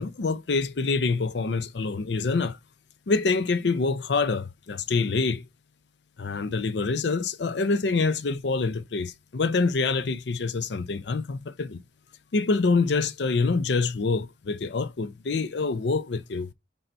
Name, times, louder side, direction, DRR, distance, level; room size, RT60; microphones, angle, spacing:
voice 1, 0.0-2.6 3.1-5.4 6.2-11.8 12.3-16.5, left 4 dB, 65° left, 0.5 m, -26 dB
5.5 x 4.0 x 4.4 m
head